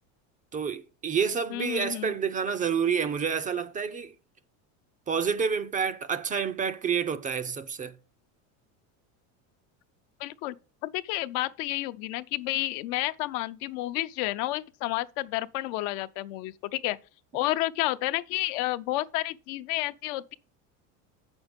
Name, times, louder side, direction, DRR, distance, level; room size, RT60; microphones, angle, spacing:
voice 1, 0.5-4.1 5.1-7.9, right 6 dB, 20° right, 0.4 m, -28 dB
voice 2, 1.5-2.1 10.2-10.5 10.8-17.0 17.3-20.3, left 17 dB, 70° left, 0.7 m, -30 dB
8.0 x 6.2 x 5.2 m
cardioid pair, 140°, 38 cm